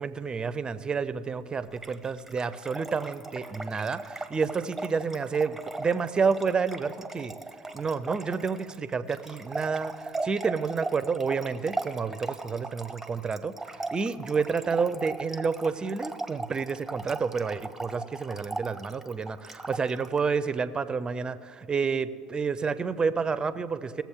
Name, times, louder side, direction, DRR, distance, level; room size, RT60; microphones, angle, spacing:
voice 1, 0.0-7.4 7.7-13.6 13.9-24.0, right 5 dB, 25° right, 14 dB, 0.6 m, -29 dB
Trickle dribble / Fill (with liquid), 1.7-20.2, right 2 dB, 5° right, 1.0 m, -38 dB
19.5 x 7.4 x 3.6 m, 2.3 s
hypercardioid pair, 80°, 3 cm